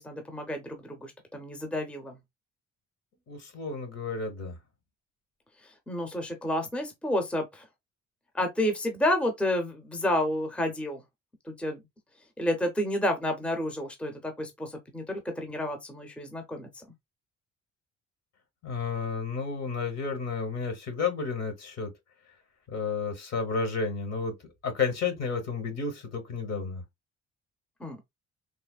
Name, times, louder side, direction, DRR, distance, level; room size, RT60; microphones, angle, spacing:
voice 1, 0.0-2.2 5.6-7.7 8.3-11.0 11.5-11.8 12.4-16.8 27.8-28.0, left 1 dB, 5° left, 0.6 m, -30 dB
voice 2, 3.3-4.5 18.6-21.9 22.7-24.3 24.6-26.8, left 5 dB, 60° left, 1.1 m, -31 dB
3.3 x 2.0 x 2.3 m
cardioid pair, 90°, 30 cm